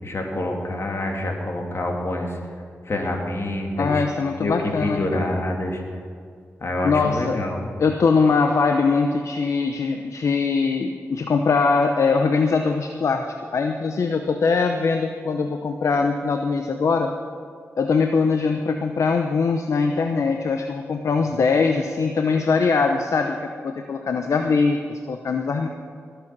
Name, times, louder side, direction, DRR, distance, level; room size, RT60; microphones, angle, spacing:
voice 1, 0.0-2.4 2.8-4.0 4.4-5.8 6.6-7.6, left 1 dB, 55° left, 1 dB, 2.8 m, -26 dB
voice 2, 3.8-5.3 6.8-7.4 7.8-13.3 13.5-17.1 17.8-25.7, left 4 dB, 70° left, 5 dB, 0.8 m, -22 dB
20.0 x 8.1 x 6.1 m, 2.1 s
cardioid pair, 50°, 5 cm